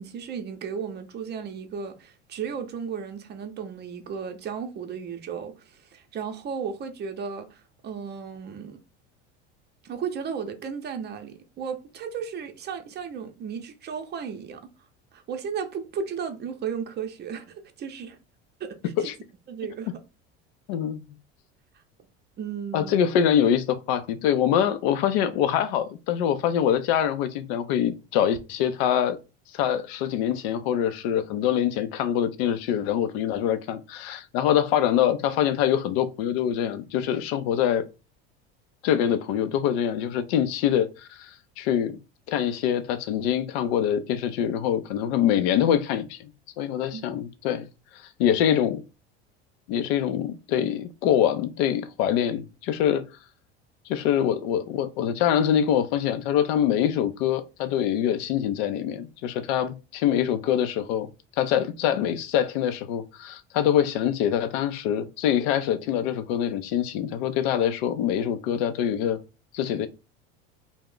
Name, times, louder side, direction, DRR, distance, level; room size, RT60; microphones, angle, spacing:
voice 1, 0.0-8.8 9.8-14.6 15.1-18.2 18.6-19.1 19.5-19.9 22.4-23.0 46.9-47.1, right 6 dB, 30° right, 0.6 m, -34 dB
voice 2, 20.7-21.0 22.7-29.2 29.5-37.8 38.8-42.0 42.3-46.3 46.6-47.7 48.2-48.8 49.7-53.0 53.9-61.1 61.4-69.2 69.5-69.9, left 9 dB, 70° left, 0.5 m, -24 dB
2.3 x 2.1 x 3.6 m
hypercardioid pair, 85°, 32 cm